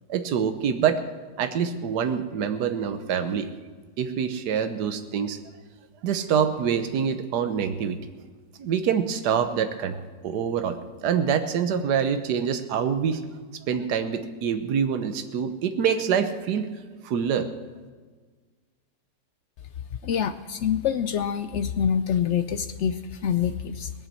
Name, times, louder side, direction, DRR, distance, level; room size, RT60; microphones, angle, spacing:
voice 1, 0.1-1.0 1.4-3.5 4.0-5.4 6.0-8.0 8.6-10.0 10.2-13.2 13.7-16.7 17.0-17.5, right 7 dB, 80° right, 8 dB, 1.4 m, -25 dB
voice 2, 20.0-23.9, left 8 dB, 75° left, 11 dB, 0.6 m, -26 dB
19.0 x 7.4 x 7.5 m, 1.4 s
omnidirectional pair, 1.7 m